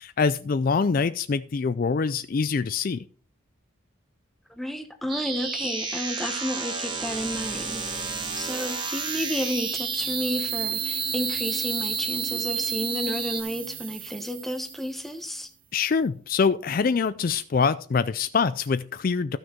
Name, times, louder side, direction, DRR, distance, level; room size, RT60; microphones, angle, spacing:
voice 1, 0.0-3.0 15.7-19.4, left 5 dB, 45° left, 0.4 m, -24 dB
voice 2, 4.5-15.5, equal, ahead, 1.0 m, -32 dB
sound 1, 5.1-13.4, right 4 dB, 25° right, 1.4 m, -31 dB
sound 2, 7.4-15.3, right 10 dB, 40° right, 0.8 m, -35 dB
13.5 x 6.3 x 4.4 m
head